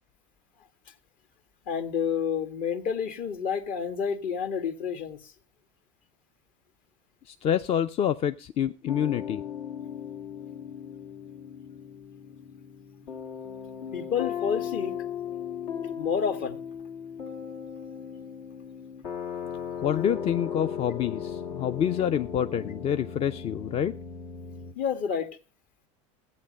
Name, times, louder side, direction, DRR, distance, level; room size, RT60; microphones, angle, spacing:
voice 1, 1.7-5.3 13.9-14.9 16.0-16.6 24.7-25.3, left 7 dB, 55° left, 1.5 m, -29 dB
voice 2, 7.3-9.4 19.8-23.9, left 9 dB, 35° left, 0.5 m, -27 dB
sound 1, 8.9-24.7, left 8 dB, 80° left, 2.5 m, -37 dB
15.0 x 8.6 x 5.1 m
supercardioid pair, 110°, 17 cm